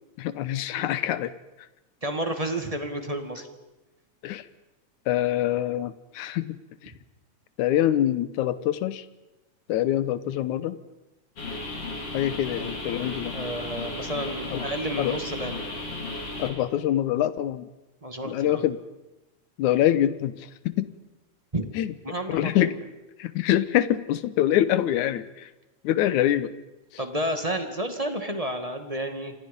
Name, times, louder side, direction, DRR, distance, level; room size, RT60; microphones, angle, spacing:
voice 1, 0.2-1.3 4.2-4.4 5.1-6.6 6.8-6.9 7.6-9.1 9.7-10.8 12.1-13.3 14.5-14.6 15.0-15.2 16.4-17.7 18.2-18.8 19.6-20.5 20.8-20.9 21.8-21.9 22.3-22.7 23.2-25.5 25.8-26.5, left 12 dB, 80° left, 15 dB, 2.4 m, -25 dB
voice 2, 2.0-3.5 13.3-15.6 18.0-18.7 21.5-21.6 22.0-22.7 27.0-29.3, right 1 dB, 15° right, 6 dB, 1.7 m, -31 dB
sound 1, 11.4-16.5, left 2 dB, 45° left, 4.7 m, -34 dB
29.0 x 26.5 x 5.4 m, 0.99 s
omnidirectional pair, 3.4 m